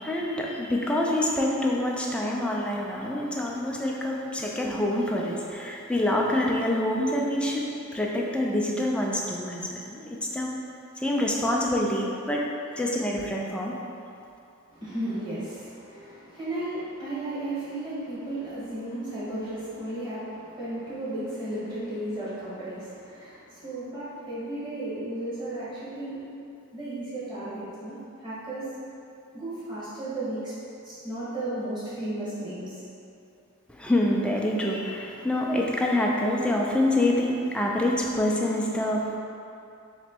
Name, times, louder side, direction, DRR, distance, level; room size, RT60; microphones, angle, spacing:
voice 1, 0.0-10.6 11.0-12.4 12.7-13.8 33.7-39.2, left 1 dB, 5° left, -2 dB, 0.3 m, -26 dB
voice 2, 14.7-26.3 26.7-28.7 29.3-30.5 30.8-32.8, right 1 dB, 20° right, -12 dB, 1.5 m, -34 dB
3.1 x 3.0 x 4.4 m, 2.6 s
head